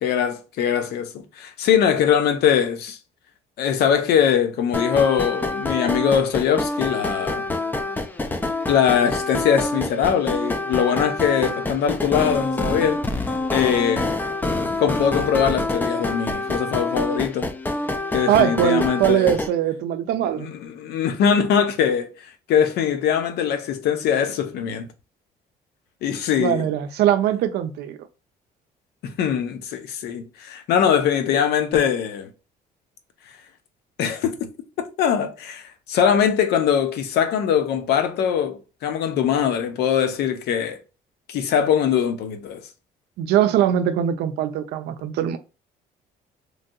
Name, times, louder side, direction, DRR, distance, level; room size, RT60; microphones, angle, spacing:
voice 1, 0.0-3.0 3.6-7.4 8.7-13.0 13.5-14.1 14.8-17.5 18.1-19.3 20.4-22.1 22.5-24.9 26.0-26.7 29.0-32.3 34.0-34.4 34.8-40.8 41.3-42.6, left 8 dB, 75° left, 0.6 m, -22 dB
sound 1, 4.7-19.5, left 2 dB, 10° left, 0.3 m, -26 dB
voice 2, 18.3-20.5 26.4-28.0 43.2-45.4, right 11 dB, 80° right, 0.5 m, -21 dB
3.2 x 2.6 x 2.2 m
cardioid pair, 110°, 17 cm